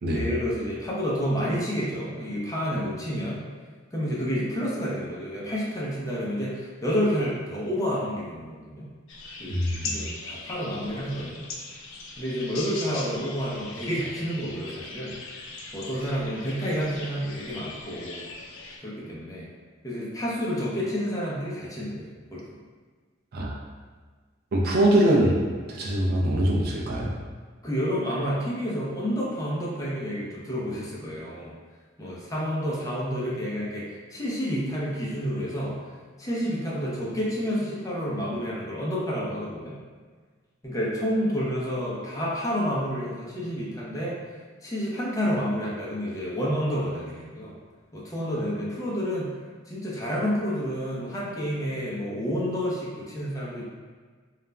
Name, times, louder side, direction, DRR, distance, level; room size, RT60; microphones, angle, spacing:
voice 1, 0.1-3.4 3.9-8.9 9.4-11.5 12.2-15.2 15.7-18.2 18.8-19.5 19.8-22.4 27.6-31.5 32.0-35.8 36.2-39.8 40.6-44.2 44.6-47.5 47.9-49.3 49.7-53.6, equal, 15° left, -6 dB, 0.5 m, -29 dB
sound 1, 9.1-18.8, left 3 dB, 70° left, 0.4 m, -40 dB
voice 2, 24.5-25.4 25.7-27.1, right 1 dB, 50° right, -2 dB, 0.4 m, -22 dB
2.3 x 2.0 x 3.2 m, 1.5 s
head